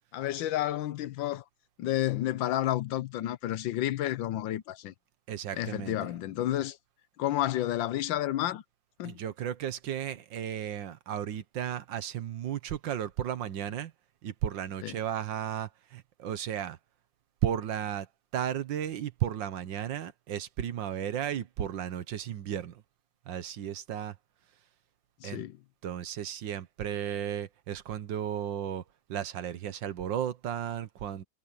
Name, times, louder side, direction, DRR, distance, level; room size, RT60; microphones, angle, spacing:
voice 1, 0.1-1.4 1.8-4.9 5.5-6.8 7.2-8.6 9.0-9.2 14.8-14.9 25.2-25.6, left 13 dB, 90° left, 1.5 m, -30 dB
voice 2, 5.3-6.0 9.0-13.9 14.2-16.8 17.4-18.1 18.3-22.8 23.3-24.2 25.2-25.5 25.8-28.8 29.1-31.2, right 10 dB, 75° right, 1.7 m, -34 dB
omnidirectional pair, 2.0 m